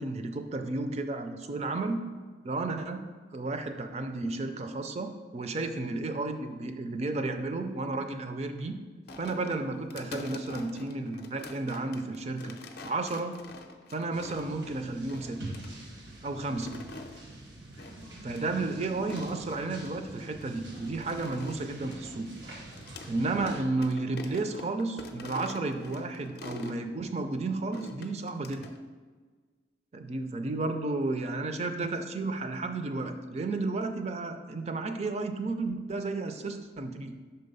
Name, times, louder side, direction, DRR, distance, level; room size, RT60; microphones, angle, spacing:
voice 1, 0.0-2.0 2.4-8.8 9.2-12.6 12.8-13.4 13.9-15.4 16.2-16.7 18.2-22.3 23.1-28.7 29.9-37.1, right 3 dB, 35° right, 7 dB, 0.4 m, -32 dB
sound 1, 9.1-14.7 15.1-15.7 16.4-17.2 17.8-18.1 18.3-18.4 19.0-19.9 20.4-23.1 23.4-23.6 23.8-26.8 27.7-28.8, left 3 dB, 55° left, 0.5 m, -45 dB
sound 2, 14.1-23.6, right 1 dB, 90° right, 1.3 m, -45 dB
5.6 x 3.7 x 5.3 m, 1.5 s
head